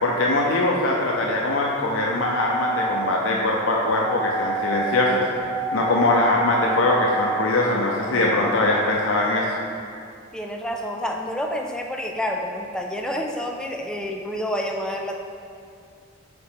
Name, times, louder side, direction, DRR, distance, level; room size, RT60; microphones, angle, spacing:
voice 1, 0.0-5.2 5.7-9.5, left 2 dB, 75° left, -3 dB, 0.6 m, -22 dB
sound 1, 2.1-8.9, right 1 dB, 20° right, 0.9 m, -30 dB
voice 2, 10.3-15.2, equal, 5° left, 1 dB, 0.4 m, -28 dB
5.0 x 4.2 x 5.1 m, 2.3 s
head